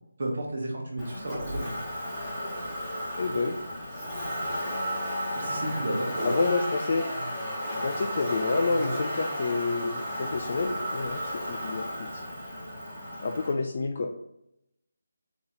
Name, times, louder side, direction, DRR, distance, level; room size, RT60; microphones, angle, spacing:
voice 1, 0.2-1.8 5.3-6.3, right 1 dB, 55° right, -1 dB, 1.2 m, -32 dB
Motor vehicle (road), 1.0-13.5, equal, 10° left, 1.4 m, -33 dB
voice 2, 3.2-3.5 6.2-7.1 7.7-12.2 13.2-14.1, left 3 dB, 45° left, 3 dB, 0.3 m, -29 dB
3.9 x 2.9 x 3.8 m, 0.83 s
figure-of-eight pair, 160°, 0 cm